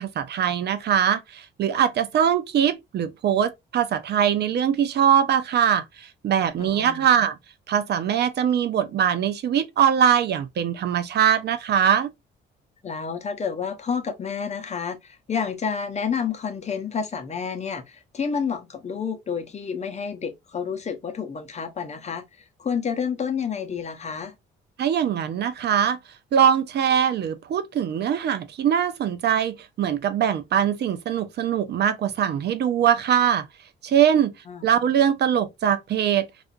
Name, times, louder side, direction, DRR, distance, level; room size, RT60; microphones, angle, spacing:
voice 1, 0.0-7.4 7.7-12.1 24.8-26.0 26.3-33.4 33.8-34.3 34.6-36.2, right 9 dB, 55° right, 0.5 m, -22 dB
voice 2, 6.6-7.0 12.8-24.3 34.5-34.6, left 6 dB, 35° left, 0.6 m, -30 dB
2.4 x 2.4 x 2.5 m
cardioid pair, 90°, 20 cm